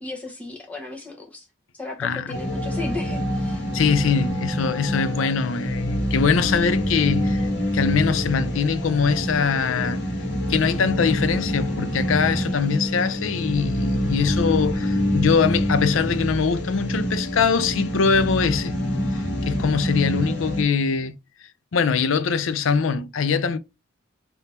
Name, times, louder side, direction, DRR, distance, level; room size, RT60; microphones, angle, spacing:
voice 1, 0.0-1.5 1.7-3.6, left 3 dB, 5° left, 0.9 m, -35 dB
voice 2, 2.0-2.4 3.7-10.0 10.5-18.7 19.5-21.2 21.7-23.6, left 5 dB, 80° left, 0.5 m, -22 dB
sound 1, 2.3-20.6, equal, 55° left, 1.3 m, -26 dB
3.5 x 2.7 x 4.2 m
head